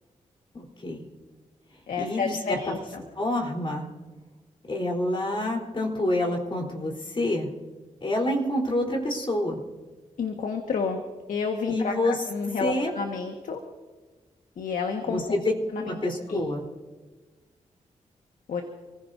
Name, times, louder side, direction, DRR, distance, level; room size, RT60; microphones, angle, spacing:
voice 1, 0.5-1.1 2.0-2.8 3.2-3.8 4.7-7.5 8.0-9.6 11.7-12.2 12.6-12.9 15.1-16.6, left 1 dB, 40° left, 0 dB, 3.9 m, -27 dB
voice 2, 1.9-3.0 10.2-11.0 11.3-13.6 14.6-15.4 15.7-15.9 16.3-16.4 18.5-18.6, left 5 dB, 80° left, 3 dB, 1.6 m, -30 dB
28.5 x 16.0 x 2.7 m, 1.3 s
cardioid pair, 70°, 13 cm